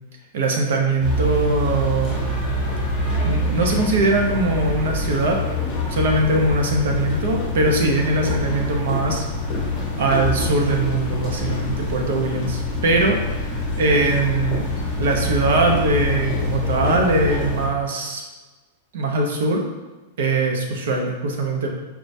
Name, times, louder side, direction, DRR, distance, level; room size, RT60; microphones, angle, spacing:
voice 1, 0.3-2.2 3.2-5.4 5.9-9.3 10.0-13.5 13.8-14.7 15.0-18.2 18.9-19.6 20.2-21.7, right 2 dB, 65° right, 1 dB, 0.7 m, -21 dB
sound 1, 1.0-17.7, left 2 dB, 20° left, 1.2 m, -25 dB
4.6 x 3.3 x 2.7 m, 1.2 s
supercardioid pair, 175°, 0 cm